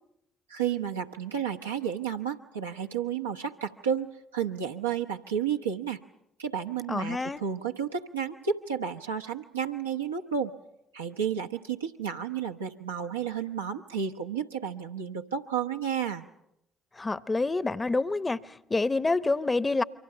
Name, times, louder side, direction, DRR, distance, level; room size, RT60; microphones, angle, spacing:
voice 1, 0.5-6.0 6.4-10.5 10.9-16.2, right 7 dB, 85° right, 1.1 m, -32 dB
voice 2, 6.9-7.4 17.0-19.8, left 3 dB, 25° left, 0.9 m, -27 dB
28.0 x 24.5 x 5.8 m
figure-of-eight pair, 45°, 0 cm